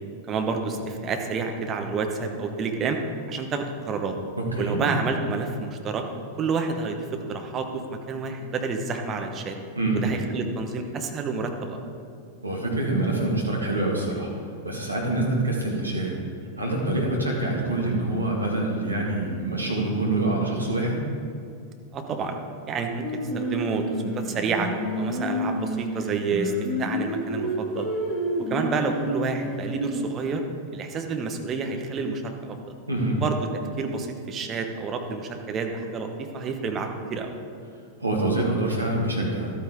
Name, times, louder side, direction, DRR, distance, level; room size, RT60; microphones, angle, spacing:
voice 1, 0.3-3.0 3.3-4.1 4.6-6.0 6.4-9.6 9.9-11.8 21.9-22.4 22.7-23.0 23.3-23.8 24.1-24.7 25.0-26.5 26.8-27.9 28.5-30.4 30.7-32.6 33.1-33.5 33.8-37.3, right 4 dB, 30° right, 4 dB, 1.1 m, -29 dB
voice 2, 4.4-4.9 9.8-10.1 12.4-14.3 14.6-16.1 16.6-21.0 32.9-33.2 38.0-39.5, right 2 dB, 85° right, -2 dB, 2.0 m, -25 dB
Singing, 23.0-30.3, equal, 15° left, 2.3 m, -30 dB
12.5 x 8.8 x 3.7 m, 2.4 s
figure-of-eight pair, 90°, 0 cm